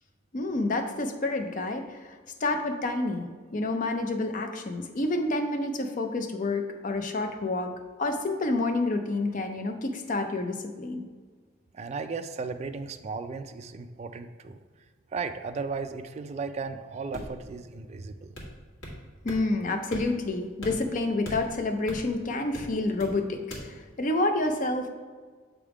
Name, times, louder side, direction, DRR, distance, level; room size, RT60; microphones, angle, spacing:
voice 1, 0.3-2.2 2.4-7.7 8.0-11.0 19.2-24.9, left 2 dB, 40° left, 5 dB, 0.5 m, -29 dB
voice 2, 11.7-14.6 15.1-18.4, right 4 dB, 35° right, 7 dB, 0.3 m, -35 dB
sound 1, 17.1-17.5 18.3-19.0 19.3-19.4 19.9-20.3 20.6-22.2 22.5-23.2 23.5-23.7, equal, 85° left, 1.7 m, -39 dB
7.2 x 3.5 x 4.8 m, 1.5 s
head